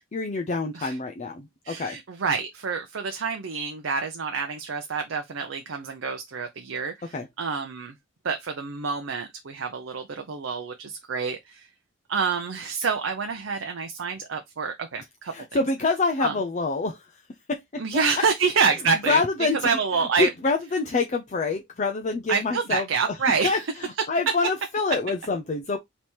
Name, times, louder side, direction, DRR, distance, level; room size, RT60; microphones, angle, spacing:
voice 1, 0.1-2.0 7.1-7.3 15.3-17.2 17.5-17.8 19.1-19.6 19.9-23.2 23.4-25.8, left 3 dB, 40° left, 0.5 m, -26 dB
voice 2, 1.6-7.9 8.2-11.7 12.1-15.3 16.2-16.3 17.8-19.2 19.6-20.3 22.3-23.6, right 5 dB, 80° right, 0.6 m, -27 dB
3.4 x 3.0 x 4.3 m
head